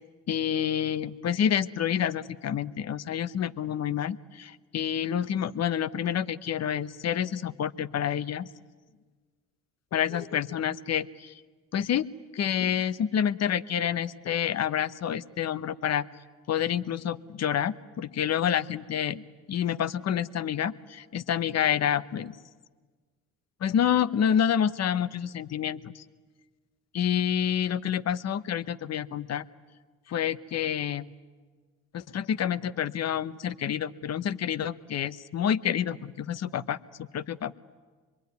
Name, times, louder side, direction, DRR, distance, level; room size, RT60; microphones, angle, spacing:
voice 1, 0.3-8.5 9.9-11.3 11.7-12.1 12.3-16.1 16.5-19.2 19.5-22.4 23.6-26.0 26.9-29.5 30.1-31.0 31.9-37.5, left 9 dB, 45° left, 13 dB, 1.1 m, -28 dB
25.5 x 23.0 x 9.6 m, 1.4 s
hypercardioid pair, 60°, 37 cm